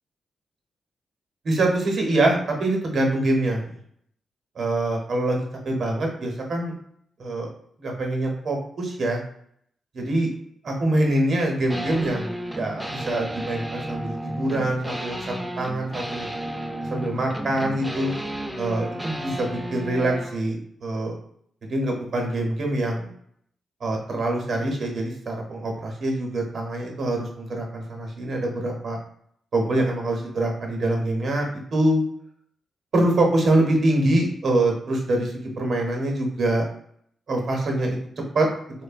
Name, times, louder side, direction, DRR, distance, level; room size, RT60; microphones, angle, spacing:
voice 1, 1.4-3.7 4.6-6.7 7.2-7.5 7.8-9.2 9.9-10.3 10.6-16.3 16.9-18.1 18.6-21.2 21.7-23.1 23.8-29.0 29.5-32.0 32.9-36.6 37.3-38.0 38.3-38.5, right 1 dB, 60° right, 1 dB, 0.7 m, -24 dB
sound 1, 11.7-20.4, right 1 dB, 5° right, 0.3 m, -33 dB
3.0 x 2.0 x 2.4 m, 0.66 s
cardioid pair, 115°, 0 cm